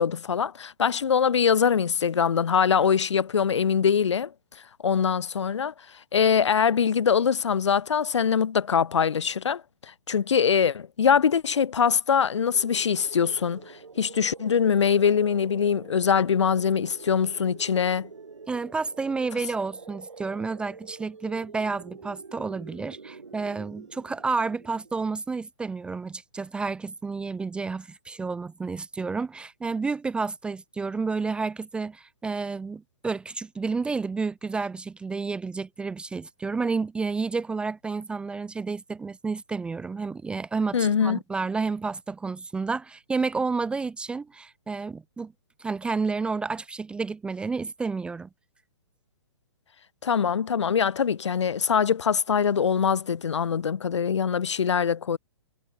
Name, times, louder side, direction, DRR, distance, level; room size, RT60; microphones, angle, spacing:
voice 1, 0.0-4.3 4.8-5.7 6.1-9.6 9.9-13.6 14.0-18.1 40.7-41.2 50.0-55.2, left 7 dB, 70° left, 0.7 m, -23 dB
sound 1, 12.4-25.2, right 4 dB, 80° right, 2.0 m, -46 dB
voice 2, 18.5-45.3 45.6-48.3, right 4 dB, 5° right, 0.4 m, -30 dB
figure-of-eight pair, 120°, 15 cm